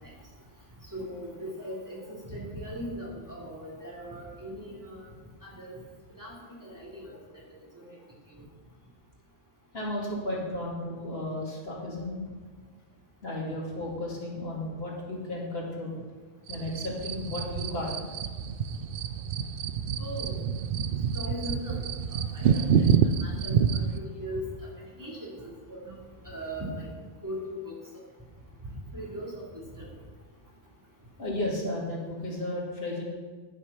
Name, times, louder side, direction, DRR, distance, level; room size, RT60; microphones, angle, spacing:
voice 1, 0.9-5.1 5.4-5.8 6.2-6.3 6.6-7.2 7.7-7.8 20.0-20.4 21.1-21.8 22.1-22.9 23.2-24.4 25.0-26.0 26.2-26.9 27.2-27.7 28.6-29.3 29.7-29.9, equal, 20° right, -5 dB, 3.0 m, -39 dB
voice 2, 9.7-12.2 13.2-16.0 16.5-18.0 31.2-33.0, left 1 dB, 75° left, -3 dB, 2.6 m, -34 dB
sound 1, 16.5-24.0, right 7 dB, 65° right, 0.7 m, -27 dB
11.5 x 6.3 x 6.0 m, 1.4 s
omnidirectional pair, 1.0 m